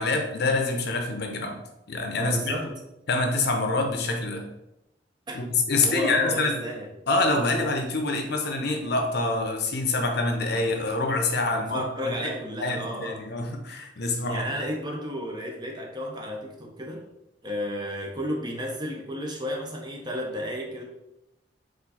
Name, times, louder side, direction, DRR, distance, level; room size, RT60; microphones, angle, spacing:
voice 1, 0.0-1.6 1.9-2.5 3.1-4.5 5.3-6.6 7.1-12.3 12.6-14.4, left 3 dB, 60° left, 4 dB, 0.7 m, -26 dB
voice 2, 2.2-2.7 5.3-5.4 5.7-6.9 11.5-13.3 14.3-17.0 17.4-20.8, equal, 25° right, 1 dB, 0.7 m, -32 dB
4.4 x 2.6 x 4.1 m, 0.88 s
head